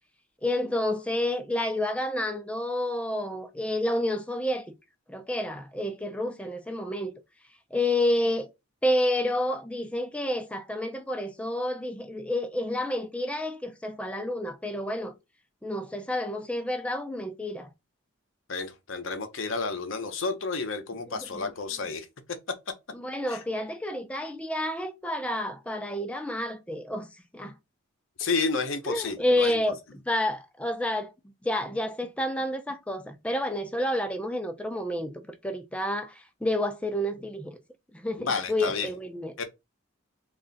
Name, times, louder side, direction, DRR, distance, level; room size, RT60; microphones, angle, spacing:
voice 1, 0.4-4.7 5.1-7.1 7.7-8.5 8.8-15.1 15.6-17.7 21.1-21.5 22.9-27.1 27.3-27.5 28.8-29.8 30.1-31.1 31.4-35.1 35.4-37.6 37.9-39.3, left 1 dB, 5° left, 0.5 m, -29 dB
voice 2, 18.5-22.1 23.3-23.4 28.2-29.5 38.2-38.9 39.4-39.5, left 4 dB, 70° left, 0.7 m, -30 dB
3.2 x 2.4 x 3.9 m
head